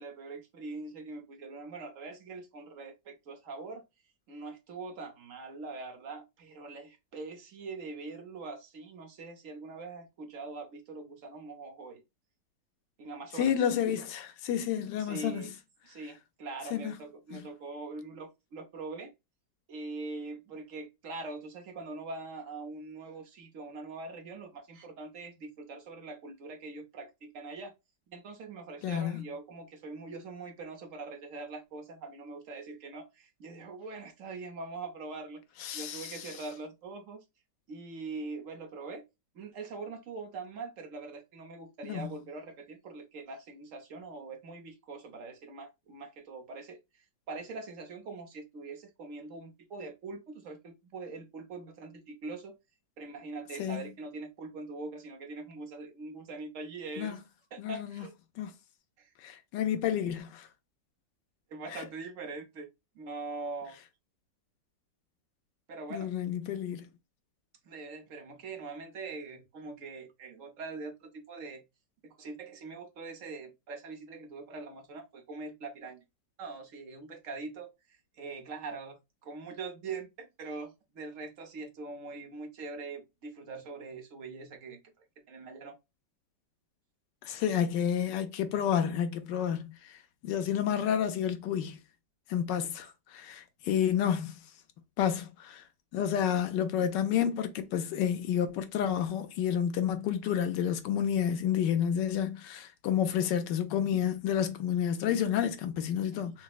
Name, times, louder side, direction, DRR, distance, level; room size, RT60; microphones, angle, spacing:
voice 1, 0.0-3.8 4.3-12.0 13.0-13.5 15.0-15.5 15.8-19.1 19.7-27.7 28.1-35.4 35.7-37.2 37.7-39.0 39.3-52.6 53.0-57.2 57.5-58.1 59.0-59.1 61.5-62.7 62.9-63.8 65.7-66.1 67.6-71.6 72.0-76.0 76.4-77.7 78.2-84.8 85.3-85.7 92.6-92.7 106.1-106.3, right 3 dB, 55° right, 1.1 m, -43 dB
voice 2, 13.3-15.5 16.7-16.9 17.3-17.5 28.8-29.2 35.6-36.3 41.8-42.1 53.6-53.8 57.0-57.2 57.6-58.0 58.4-58.5 59.2-60.5 61.7-61.8 65.9-66.9 87.2-91.8 92.3-94.4 95.0-95.6 95.9-106.4, left 9 dB, 80° left, 1.3 m, -30 dB
6.0 x 2.1 x 2.3 m
omnidirectional pair, 1.9 m